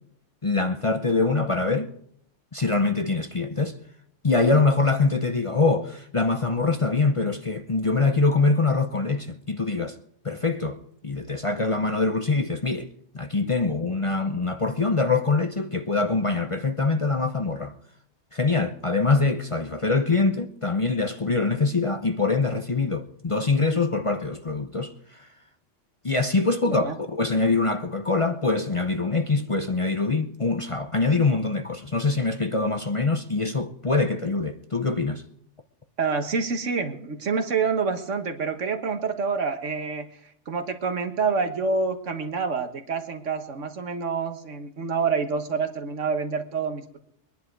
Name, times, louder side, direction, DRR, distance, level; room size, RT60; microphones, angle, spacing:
voice 1, 0.4-1.9 2.5-3.8 4.2-10.0 10.2-17.7 18.3-25.3 26.0-35.2, left 3 dB, 30° left, 0.7 m, -24 dB
voice 2, 26.7-27.0 36.0-40.1 40.5-47.0, right 5 dB, 80° right, 1.7 m, -27 dB
23.0 x 10.5 x 4.6 m
omnidirectional pair, 1.3 m